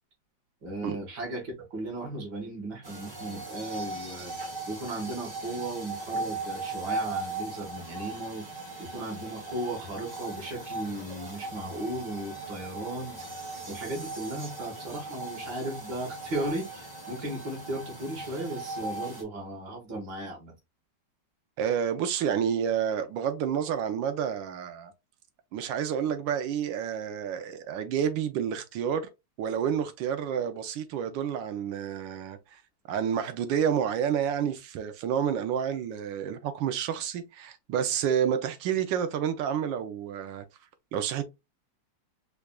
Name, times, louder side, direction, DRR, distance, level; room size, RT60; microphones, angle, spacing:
voice 1, 0.6-4.4 4.7-8.4 8.8-13.2 13.7-20.5, right 1 dB, 65° right, 2.2 m, -36 dB
sound 1, 2.8-19.2, right 2 dB, 20° right, 0.6 m, -38 dB
voice 2, 21.6-24.9 25.5-29.1 29.4-32.6 32.9-40.4 40.9-41.2, right 8 dB, 90° right, 1.4 m, -29 dB
4.8 x 2.4 x 2.3 m
omnidirectional pair, 2.0 m